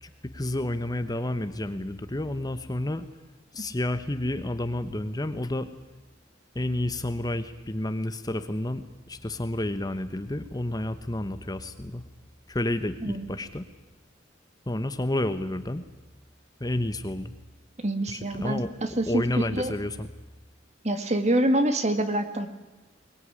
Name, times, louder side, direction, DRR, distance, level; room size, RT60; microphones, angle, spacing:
voice 1, 0.0-3.0 3.5-5.7 6.5-12.0 12.5-13.7 14.7-15.8 16.6-17.3 18.1-18.7 19.1-20.1, left 1 dB, 20° left, 10 dB, 1.1 m, -30 dB
voice 2, 17.8-19.2 19.5-19.7 20.8-22.5, right 1 dB, 35° right, 9 dB, 2.1 m, -26 dB
23.0 x 20.5 x 9.9 m, 1.1 s
head